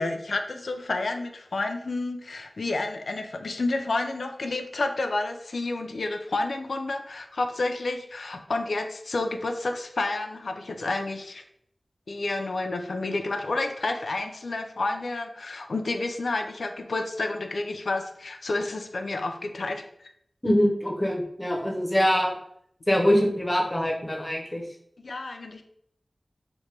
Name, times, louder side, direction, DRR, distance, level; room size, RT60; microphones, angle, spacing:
voice 1, 0.0-11.4 12.1-19.8 25.0-25.6, left 2 dB, 85° left, 6 dB, 0.3 m, -30 dB
voice 2, 20.4-22.3 22.9-24.6, equal, 20° left, 0 dB, 0.6 m, -23 dB
2.9 x 2.1 x 3.2 m, 0.69 s
wide cardioid pair, 75°, 0 cm